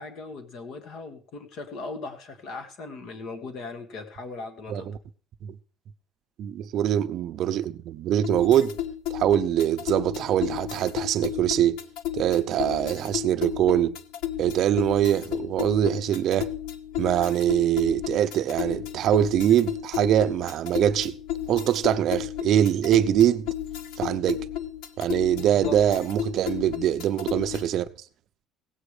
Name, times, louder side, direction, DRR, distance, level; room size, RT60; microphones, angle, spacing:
voice 1, 0.0-4.9 25.4-25.8, left 3 dB, 50° left, 1.6 m, -38 dB
voice 2, 6.4-8.8 9.1-11.8 12.1-13.9 14.4-16.5 17.0-21.2 21.5-23.5 24.0-24.5 25.0-27.9, right 11 dB, 45° right, 0.6 m, -23 dB
sound 1, 8.2-27.8, left 11 dB, 80° left, 1.0 m, -33 dB
16.5 x 8.1 x 4.9 m
cardioid pair, 175°, 0 cm